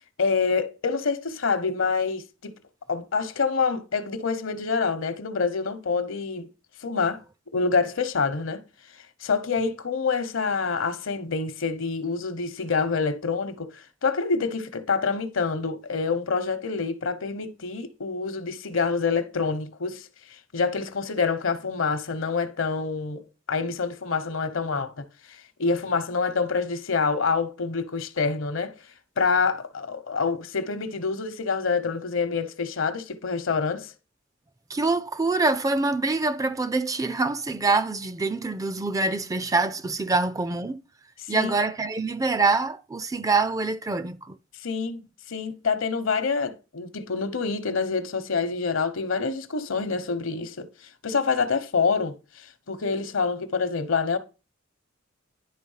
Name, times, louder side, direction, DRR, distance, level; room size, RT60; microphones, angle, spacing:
voice 1, 0.2-2.5 2.9-6.5 6.8-7.2 7.5-8.6 9.2-20.0 20.5-25.0 25.6-28.7 29.2-33.9 41.3-41.5 44.6-50.7 51.0-54.2, left 4 dB, 75° left, 0.9 m, -26 dB
voice 2, 34.7-40.8 41.3-44.4, right 3 dB, 15° right, 0.3 m, -25 dB
10.5 x 3.5 x 5.5 m
head